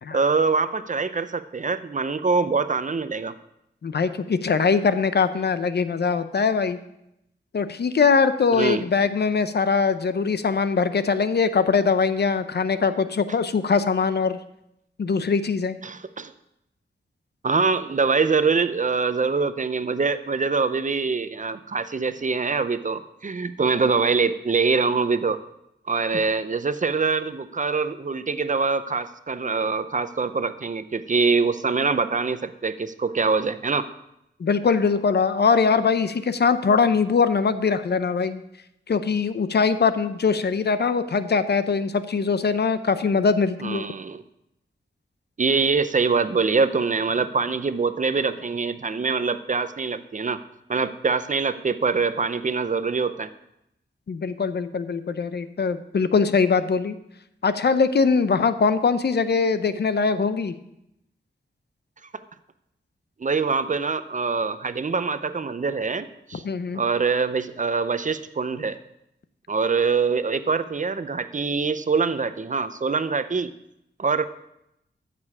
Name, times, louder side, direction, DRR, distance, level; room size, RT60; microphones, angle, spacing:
voice 1, 0.1-3.3 8.5-8.8 15.8-16.3 17.4-25.4 25.9-33.9 43.6-44.2 45.4-50.4 50.7-53.3 63.2-66.4 66.7-68.8 69.5-73.5 74.0-74.2, right 4 dB, 40° right, 12 dB, 0.7 m, -24 dB
voice 2, 3.8-6.8 7.5-14.4 15.0-15.8 34.4-38.4 38.9-43.8 54.1-57.0 57.4-60.5 66.4-66.8, left 5 dB, 60° left, 12 dB, 0.7 m, -22 dB
14.5 x 6.8 x 4.8 m, 0.82 s
wide cardioid pair, 75°, 19 cm